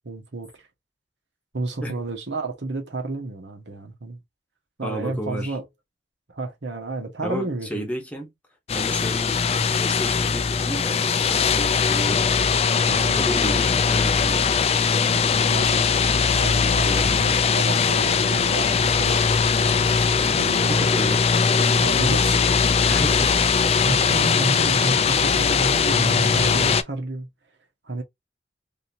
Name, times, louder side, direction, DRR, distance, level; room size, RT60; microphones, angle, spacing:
voice 1, 0.0-0.7 1.5-4.2 4.8-5.6 6.3-7.8 12.9-13.2 15.5-15.9 16.3-19.9 20.4-20.8 21.8-22.4 23.8-27.3 27.8-28.0, right 2 dB, 85° right, 1.3 m, -31 dB
voice 2, 4.8-5.6 7.2-8.3 8.7-9.4 9.7-12.3 13.2-14.7 16.8-17.1 20.2-20.4 20.7-21.2 22.9-23.4, equal, 10° left, 1.1 m, -32 dB
sound 1, 8.7-26.8, left 5 dB, 35° left, 0.4 m, -20 dB
3.6 x 2.8 x 2.8 m
head